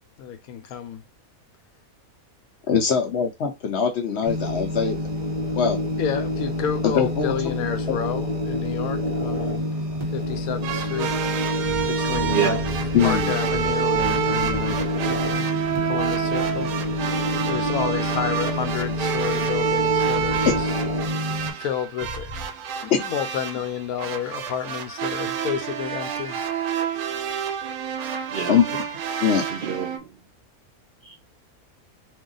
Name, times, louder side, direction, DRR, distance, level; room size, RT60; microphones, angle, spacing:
voice 1, 0.2-1.0 6.0-9.6 10.1-11.1 11.8-12.6 13.0-15.6 15.8-16.8 17.4-20.7 21.6-22.3 22.8-26.4, left 9 dB, 80° left, 1.0 m, -30 dB
voice 2, 2.7-5.0 5.6-5.8 6.8-7.5 7.9-8.0 12.9-13.3 20.5-20.6 22.9-23.0 28.5-28.6 29.2-29.4, left 7 dB, 65° left, 0.7 m, -22 dB
sound 1, 4.3-21.5, left 1 dB, 30° right, 1.0 m, -27 dB
sound 2, 10.6-30.0, right 8 dB, 80° right, 1.0 m, -28 dB
sound 3, 11.6-14.9 20.2-20.6 22.0-22.5, right 2 dB, 35° left, 1.2 m, -35 dB
voice 3, 12.2-12.6 28.3-28.6 29.5-30.1 31.0-31.1, right 7 dB, 60° right, 0.6 m, -27 dB
2.7 x 2.4 x 3.8 m
omnidirectional pair, 1.5 m